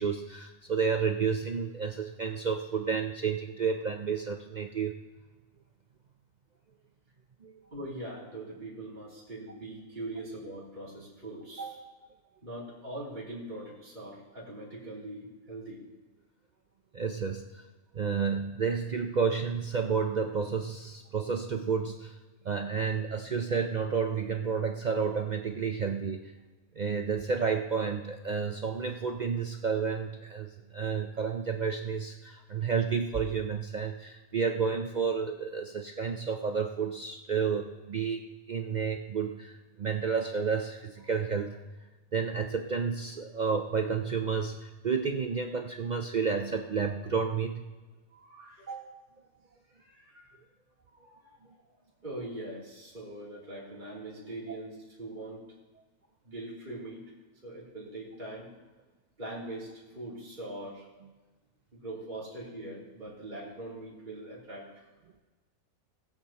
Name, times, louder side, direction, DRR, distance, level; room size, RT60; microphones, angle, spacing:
voice 1, 0.0-5.0 7.4-7.6 16.9-17.6 17.9-22.2 22.4-26.2 26.8-41.6 42.1-47.7, right 6 dB, 70° right, 4 dB, 0.4 m, -31 dB
voice 2, 7.7-11.8 12.4-15.8 48.1-48.9 49.7-50.4 50.9-51.4 51.7-55.4 56.2-57.0 57.4-58.5 59.2-60.9 61.7-64.9, right 2 dB, 30° right, -7 dB, 3.2 m, -42 dB
20.0 x 7.9 x 2.9 m, 1.2 s
omnidirectional pair, 1.5 m